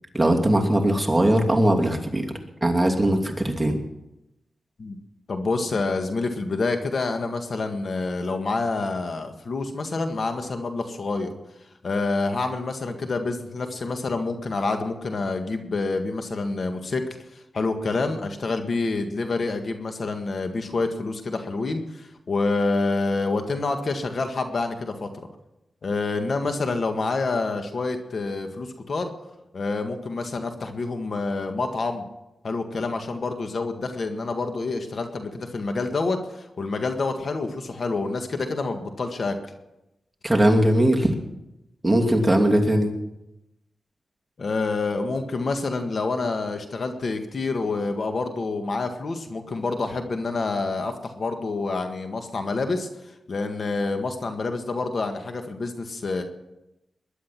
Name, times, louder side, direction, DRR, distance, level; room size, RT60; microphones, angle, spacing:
voice 1, 0.1-2.3 2.6-3.8 40.2-41.1 41.8-42.9, right 1 dB, 10° right, 1 dB, 2.7 m, -20 dB
voice 2, 5.3-11.3 11.8-17.0 17.5-25.1 25.8-29.1 29.5-32.0 32.4-39.4 44.4-52.9 53.3-56.2, left 3 dB, 60° left, 6 dB, 1.8 m, -27 dB
21.0 x 11.0 x 6.0 m, 0.92 s
cardioid pair, 70°, 0 cm